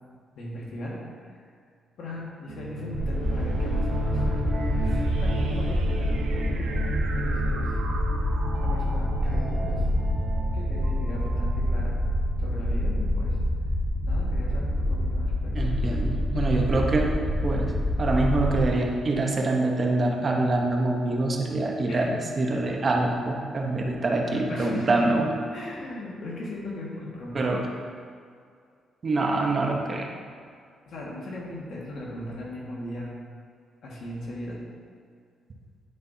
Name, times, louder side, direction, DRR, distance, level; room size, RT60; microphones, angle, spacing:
voice 1, 0.3-1.4 2.0-7.8 8.6-9.8 10.5-12.0 12.4-13.4 14.0-15.7 21.9-22.1 24.3-25.0 25.5-27.5 30.8-33.1 33.8-34.6, left 1 dB, 70° left, -4 dB, 1.7 m, -38 dB
sound 1, 2.5-12.7, right 2 dB, 80° right, 0.8 m, -33 dB
sound 2, 2.9-18.7, equal, 20° left, 1.7 m, -27 dB
voice 2, 15.6-17.1 17.4-17.7 18.0-25.3 27.3-27.6 29.0-30.2, right 2 dB, 40° right, 0 dB, 1.0 m, -25 dB
9.3 x 5.4 x 2.8 m, 2.2 s
cardioid pair, 100°, 0 cm